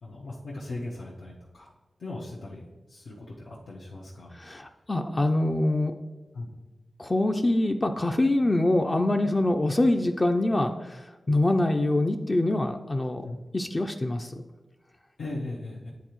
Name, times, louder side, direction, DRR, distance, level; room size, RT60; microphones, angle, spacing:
voice 1, 0.0-1.7 2.0-2.6 2.9-4.4 6.3-6.5 13.2-13.4 15.2-15.9, left 2 dB, 90° left, -7 dB, 1.1 m, -38 dB
voice 2, 4.3-6.0 7.0-13.3 13.5-14.4, left 1 dB, 25° left, 5 dB, 0.4 m, -25 dB
10.0 x 4.0 x 3.0 m, 1.2 s
wide cardioid pair, 115°, 0 cm